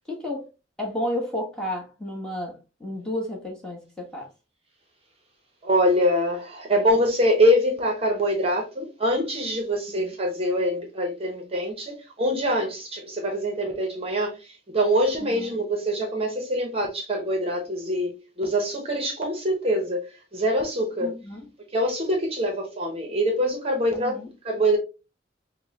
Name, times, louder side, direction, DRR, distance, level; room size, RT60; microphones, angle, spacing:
voice 1, 0.1-0.4 0.8-4.3 9.9-10.1 15.2-15.6 21.0-21.4 23.9-24.3, left 1 dB, 5° left, 1.2 m, -32 dB
voice 2, 5.6-21.1 21.7-24.8, equal, 35° right, 0.8 m, -24 dB
5.3 x 2.1 x 2.7 m
head